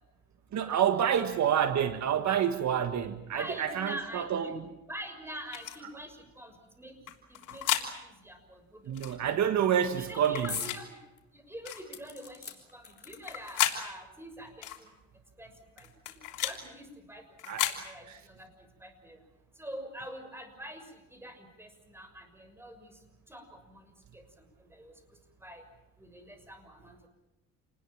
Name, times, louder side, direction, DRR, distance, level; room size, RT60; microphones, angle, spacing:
voice 1, 0.5-4.6 8.9-10.6 17.5-17.7 18.1-18.2, right 9 dB, 65° right, 8 dB, 1.7 m, -28 dB
voice 2, 3.3-4.5 4.9-6.9 7.3-8.9 9.8-11.0 11.3-14.9 15.4-17.2 17.6-18.5 18.8-19.2 19.6-22.9 23.3-23.8 24.1-24.9 25.4-25.6 26.0-27.0, equal, 10° right, 7 dB, 6.6 m, -45 dB
sound 1, 5.5-5.8 7.1-7.9 8.9-9.2 10.2-10.8 11.6-11.8 13.1-13.8 14.6-14.8 15.8-16.6 17.4-17.8, left 12 dB, 85° left, 3.4 m, -33 dB
sound 2, 10.5-10.8 11.2-11.3 11.9-13.6 14.5-14.6 14.8-14.9, left 5 dB, 35° left, 4.2 m, -41 dB
28.5 x 20.0 x 7.4 m, 0.95 s
cardioid pair, 90°, 30 cm